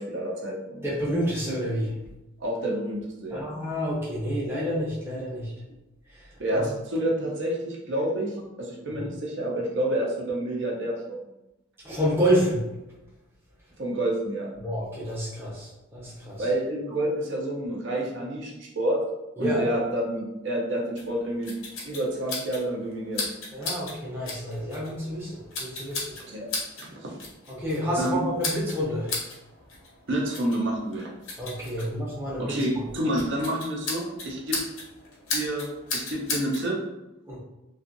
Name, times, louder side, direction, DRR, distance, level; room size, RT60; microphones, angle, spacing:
voice 1, 0.0-0.9 2.4-3.5 6.4-11.2 13.8-14.5 16.4-19.0 19.4-21.6 21.8-23.3 26.3-26.5 27.0-27.2 28.0-28.1 30.1-31.1 31.8-31.9 32.4-34.6 35.3-36.8, right 1 dB, 60° right, -2 dB, 0.5 m, -29 dB
voice 2, 0.8-1.9 3.3-5.5 6.5-6.7 8.9-9.1 11.8-12.6 14.6-16.4 19.4-19.7 23.5-26.0 27.5-29.2 31.4-32.6 37.3-37.4, equal, 10° right, -7 dB, 0.6 m, -28 dB
sound 1, 21.0-36.7, left 3 dB, 85° left, 0.8 m, -37 dB
2.6 x 2.3 x 2.5 m, 0.94 s
head